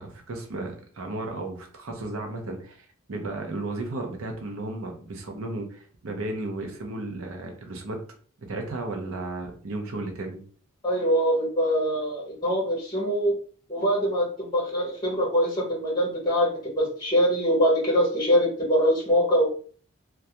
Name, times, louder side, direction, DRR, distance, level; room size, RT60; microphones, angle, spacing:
voice 1, 0.0-8.0 8.5-10.4, right 2 dB, 80° right, 3 dB, 0.6 m, -34 dB
voice 2, 10.8-13.3 13.7-19.5, equal, 20° left, -3 dB, 0.7 m, -23 dB
2.3 x 2.2 x 2.7 m, 0.43 s
head